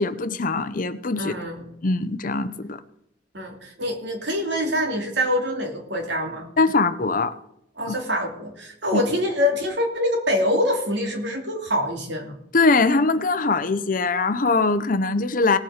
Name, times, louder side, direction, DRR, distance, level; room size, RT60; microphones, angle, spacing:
voice 1, 0.0-1.3 1.8-2.8 6.6-7.4 7.9-8.0 8.9-9.0 12.5-15.6, left 3 dB, 50° left, 0.7 m, -22 dB
voice 2, 1.2-1.7 3.3-6.5 7.8-12.4, left 1 dB, 70° right, 2.6 m, -25 dB
18.0 x 7.5 x 4.9 m
head